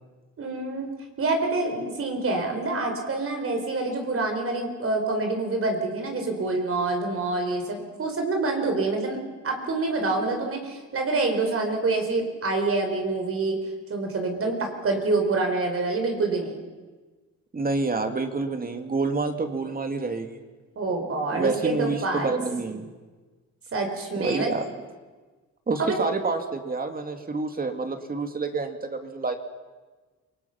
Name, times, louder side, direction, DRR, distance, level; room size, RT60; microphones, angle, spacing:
voice 1, 0.4-0.9 1.2-13.6 13.9-16.6 20.8-22.3 23.7-24.5 25.8-26.1, right 3 dB, 50° right, 4 dB, 4.4 m, -26 dB
voice 2, 17.5-20.4 21.3-22.9 24.1-24.7 25.7-29.4, right 3 dB, 30° right, 6 dB, 2.3 m, -28 dB
28.0 x 19.0 x 5.9 m, 1.3 s
cardioid pair, 90°, 30 cm